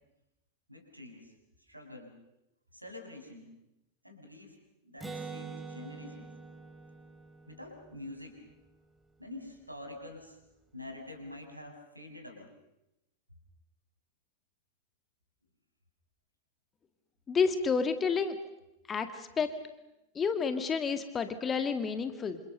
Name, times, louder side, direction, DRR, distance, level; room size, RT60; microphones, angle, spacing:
voice 1, 0.7-1.3 1.6-2.1 2.7-3.4 4.0-4.6 4.8-6.3 7.5-8.4 9.2-10.4 10.7-12.5, left 2 dB, 85° right, 4 dB, 6.1 m, -46 dB
Acoustic guitar, 5.0-8.7, right 4 dB, 5° right, 3.1 m, -45 dB
voice 2, 17.3-18.4 18.9-19.5 20.2-22.4, left 5 dB, 20° left, 9 dB, 2.0 m, -30 dB
28.5 x 27.0 x 6.7 m, 0.91 s
figure-of-eight pair, 90°, 0 cm